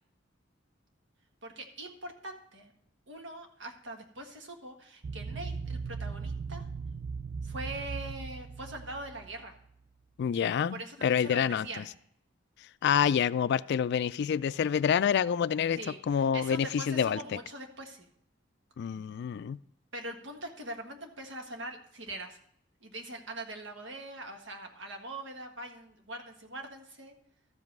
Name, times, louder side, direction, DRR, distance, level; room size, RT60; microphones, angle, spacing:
voice 1, 1.4-2.7 3.1-6.6 7.4-9.5 10.7-11.9 15.8-18.1 19.9-22.4 22.8-27.1, right 1 dB, 70° right, 1.6 m, -42 dB
sound 1, 5.0-9.7, right 5 dB, 45° right, 0.3 m, -38 dB
voice 2, 10.2-11.8 12.8-15.8 16.1-17.2 18.8-19.6, left 8 dB, 60° left, 0.3 m, -27 dB
13.0 x 5.3 x 6.0 m
head